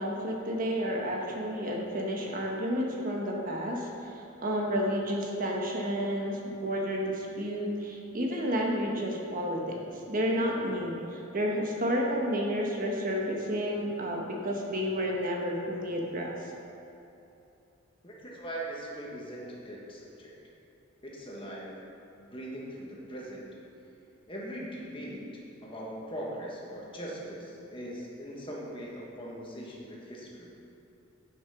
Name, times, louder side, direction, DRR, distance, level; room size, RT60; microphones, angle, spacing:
voice 1, 0.0-9.8 10.1-16.3, equal, 40° right, -1 dB, 1.2 m, -31 dB
voice 2, 18.0-20.3 21.0-21.8 22.2-23.5 24.3-25.3 25.6-30.5, right 1 dB, 25° left, -3 dB, 1.5 m, -40 dB
10.0 x 5.9 x 5.8 m, 2.9 s
head